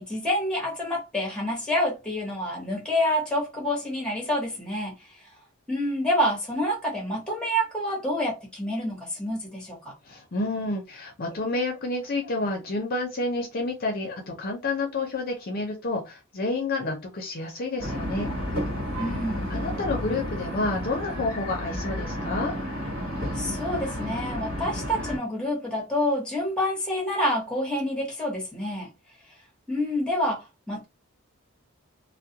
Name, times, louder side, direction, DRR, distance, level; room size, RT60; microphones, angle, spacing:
voice 1, 0.0-5.3 5.7-9.9 19.0-19.6 23.3-28.9 29.7-30.8, left 1 dB, 5° left, 1.0 m, -28 dB
voice 2, 10.1-18.3 19.5-22.5, left 2 dB, 45° left, 0.6 m, -29 dB
sound 1, 17.8-25.2, equal, 65° right, 1.2 m, -31 dB
2.3 x 2.1 x 2.8 m
head